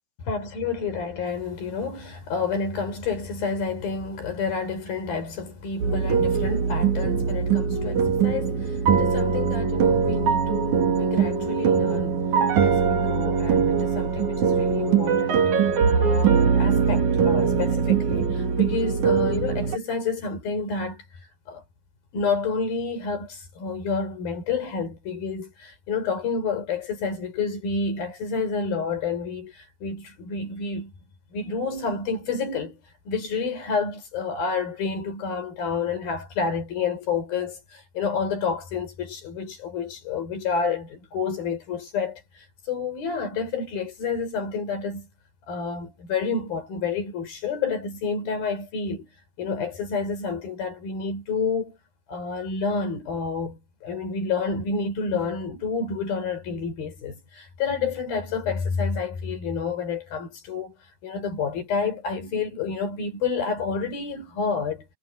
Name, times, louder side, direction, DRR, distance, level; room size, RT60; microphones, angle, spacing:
voice 1, 0.2-12.3 12.6-15.5 15.8-21.0 21.5-21.6 22.1-30.9 31.3-32.8 33.1-45.1 45.5-49.1 49.4-51.8 52.1-60.7 61.0-64.9, left 5 dB, 60° left, 6.7 m, -29 dB
sound 1, 5.8-19.8, right 6 dB, 50° right, 3.4 m, -22 dB
omnidirectional pair, 4.7 m